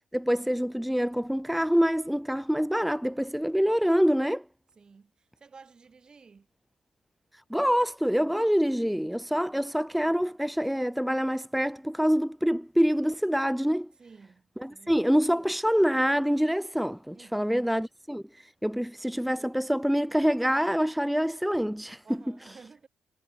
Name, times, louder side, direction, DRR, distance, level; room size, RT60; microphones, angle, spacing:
voice 1, 0.1-4.4 7.5-13.9 14.6-22.0, equal, ahead, 0.4 m, -26 dB
voice 2, 4.8-6.5 9.4-9.7 14.0-15.1 17.1-17.6 22.0-22.9, right 5 dB, 40° right, 5.4 m, -53 dB
hypercardioid pair, 45°, 2 cm